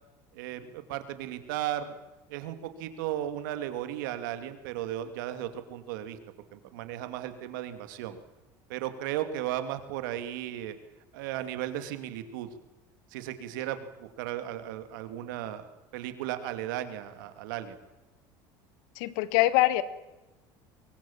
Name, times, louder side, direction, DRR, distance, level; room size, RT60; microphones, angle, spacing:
voice 1, 0.3-1.9 2.3-6.2 6.5-8.2 8.7-10.7 11.1-12.5 13.1-17.9, right 12 dB, 85° right, 9 dB, 2.7 m, -35 dB
voice 2, 18.9-19.8, left 16 dB, 75° left, 15 dB, 1.7 m, -23 dB
24.0 x 22.0 x 7.4 m, 1.1 s
supercardioid pair, 110°, 10 cm